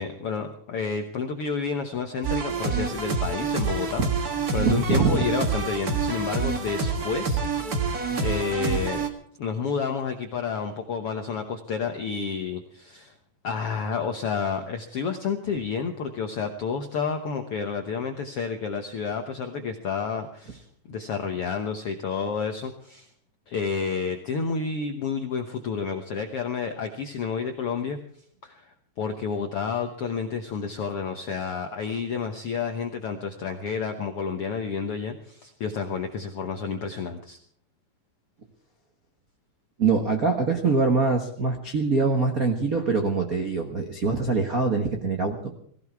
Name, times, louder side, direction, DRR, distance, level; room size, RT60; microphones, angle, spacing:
voice 1, 0.0-4.0 4.5-7.4 8.2-9.0 9.4-13.1 13.4-23.1 23.5-28.0 28.4-37.4, left 5 dB, 75° left, 5 dB, 1.3 m, -30 dB
sound 1, 2.2-9.1, right 4 dB, 45° right, 1.2 m, -27 dB
voice 2, 4.6-5.3 39.8-45.5, right 4 dB, 65° right, 3 dB, 0.8 m, -24 dB
18.5 x 16.0 x 4.7 m, 0.62 s
omnidirectional pair, 4.1 m